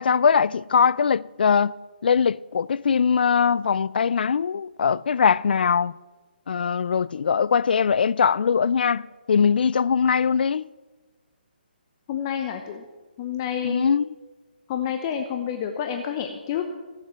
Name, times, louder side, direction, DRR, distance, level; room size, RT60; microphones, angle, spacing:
voice 1, 0.0-1.7 2.0-6.0 6.5-10.7 13.6-14.1, left 6 dB, 65° left, 0.4 m, -21 dB
voice 2, 12.1-12.8 13.2-13.9 14.7-16.7, left 9 dB, 25° left, 0.8 m, -29 dB
17.0 x 7.6 x 6.9 m
hypercardioid pair, 160°, 6 cm